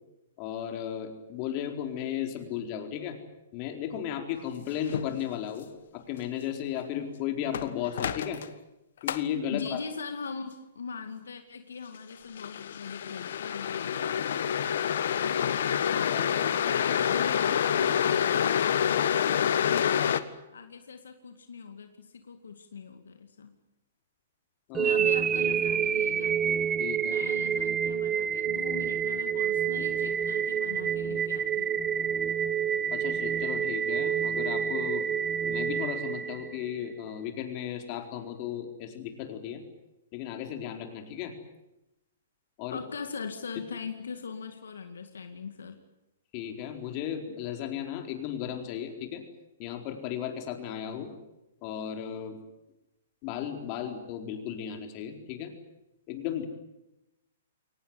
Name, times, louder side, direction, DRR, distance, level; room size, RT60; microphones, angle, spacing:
voice 1, 0.4-3.2 3.5-5.7 5.9-8.4 9.0-9.8 16.1-16.5 24.7-25.0 26.8-27.2 32.9-35.0 35.4-39.6 40.1-41.3 42.6-42.8 46.3-49.2 49.6-51.1 51.6-52.4 53.2-55.5 56.1-56.5, left 9 dB, 40° left, 5 dB, 4.3 m, -35 dB
sound 1, 4.9-5.1 7.5-8.5 9.1-9.2 12.4-20.2, left 9 dB, 65° left, 1.5 m, -27 dB
voice 2, 9.5-14.2 15.2-15.7 16.6-20.2 20.5-23.5 24.8-26.6 27.0-31.8 42.7-45.8, left 5 dB, 80° left, 7 dB, 2.2 m, -41 dB
sound 2, 24.7-36.8, right 8 dB, 15° right, 0.8 m, -28 dB
23.0 x 19.0 x 9.7 m, 0.93 s
hypercardioid pair, 135°, 0 cm